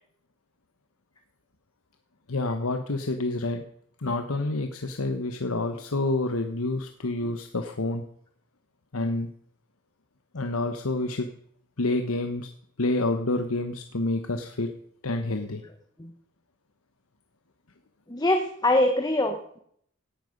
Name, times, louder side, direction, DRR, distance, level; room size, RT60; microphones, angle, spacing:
voice 1, 2.3-3.6 4.0-8.0 8.9-9.3 10.3-11.3 11.8-12.5 12.8-14.7 15.0-15.6, left 2 dB, 90° left, 6 dB, 1.2 m, -28 dB
voice 2, 18.1-19.6, left 1 dB, 20° left, 5 dB, 1.2 m, -24 dB
17.5 x 11.5 x 5.3 m, 0.66 s
head